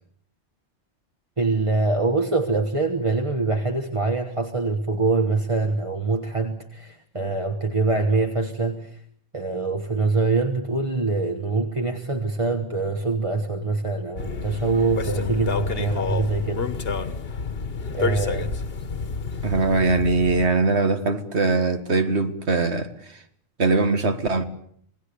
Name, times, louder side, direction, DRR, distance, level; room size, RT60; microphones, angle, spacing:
voice 1, 1.4-9.0 9.3-17.1 17.9-18.5, right 3 dB, 30° right, 1.5 m, -24 dB
sound 1, 14.2-20.5, left 4 dB, 55° left, 1.4 m, -29 dB
voice 2, 19.4-23.2 23.6-24.4, right 3 dB, 70° right, 2.1 m, -21 dB
27.5 x 19.0 x 8.4 m
omnidirectional pair, 1.2 m